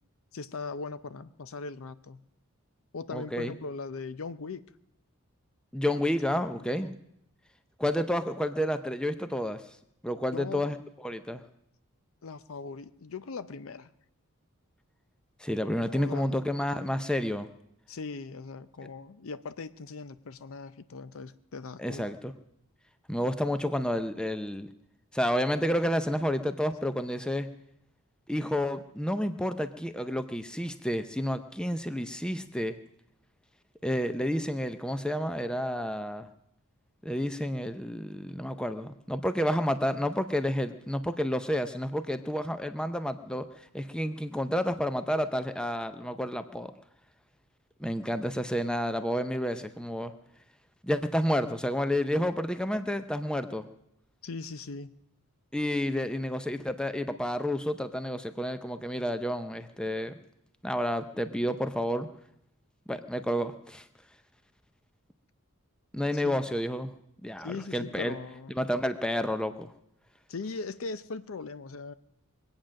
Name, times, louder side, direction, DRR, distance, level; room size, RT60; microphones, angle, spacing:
voice 1, 0.3-2.3 2.9-4.6 5.9-6.0 6.3-6.8 10.3-10.7 12.2-13.9 15.6-16.5 17.9-22.1 54.2-54.9 66.1-66.4 67.4-68.9 70.3-71.9, left 4 dB, 65° left, 14 dB, 0.6 m, -40 dB
voice 2, 3.1-3.5 5.7-6.9 7.8-9.6 10.0-10.8 11.0-11.4 15.4-17.5 21.8-22.3 23.1-24.7 25.1-27.5 28.3-32.8 33.8-36.3 37.0-43.4 43.7-46.7 47.8-50.1 50.8-53.6 55.5-60.1 60.6-62.1 62.9-63.8 65.9-66.9 67.2-68.1 68.6-69.7, equal, 5° left, 10 dB, 0.5 m, -30 dB
22.5 x 8.8 x 6.3 m, 0.76 s
head